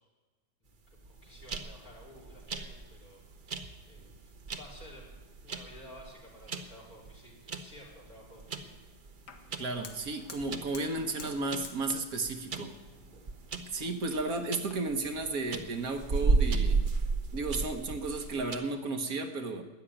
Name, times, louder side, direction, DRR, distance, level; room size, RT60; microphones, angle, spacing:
voice 1, 0.6-3.2 3.9-5.1 5.4-8.7, left 1 dB, 60° left, -6 dB, 4.4 m, -53 dB
sound 1, 1.0-18.6, right 4 dB, 40° right, 0.9 m, -34 dB
Fire, 9.3-14.7, left 5 dB, 80° left, 1.9 m, -52 dB
voice 2, 9.6-12.7 13.7-16.9 17.3-19.6, right 3 dB, 60° right, 6 dB, 1.6 m, -33 dB
13.0 x 9.4 x 10.0 m, 1.3 s
omnidirectional pair, 1.7 m